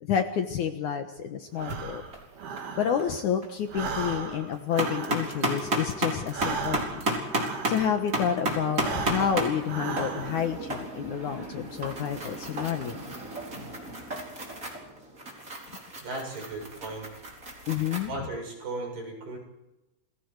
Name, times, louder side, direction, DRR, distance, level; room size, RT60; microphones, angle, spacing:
voice 1, 0.0-2.0 2.8-7.0 7.7-13.0 17.7-18.1, left 8 dB, 65° left, 7 dB, 2.2 m, -29 dB
sound 1, 1.6-1.8 2.1-2.7 3.0-3.1 3.4-4.0 4.3-18.1, right 1 dB, 20° right, 4.5 m, -33 dB
Breathing, 1.6-3.3 3.6-8.2 8.7-10.6, right 5 dB, 75° right, 4.4 m, -37 dB
voice 2, 16.0-17.1 18.1-19.4, right 2 dB, 60° right, 1 dB, 9.0 m, -36 dB
29.5 x 21.5 x 4.8 m, 0.93 s
omnidirectional pair, 4.5 m